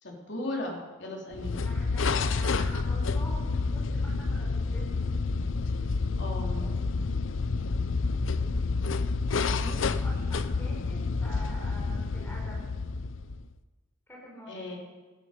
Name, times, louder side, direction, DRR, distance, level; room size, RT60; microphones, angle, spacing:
voice 1, 0.0-1.6 6.2-6.7 14.5-14.8, left 2 dB, 60° left, 0 dB, 3.5 m, -36 dB
sound 1, 1.3-13.5, left 4 dB, 75° left, 0.6 m, -29 dB
voice 2, 1.5-5.2 8.3-8.5 9.3-12.7 14.1-14.8, equal, 10° left, -3 dB, 3.9 m, -46 dB
16.5 x 12.5 x 5.2 m, 1.3 s
head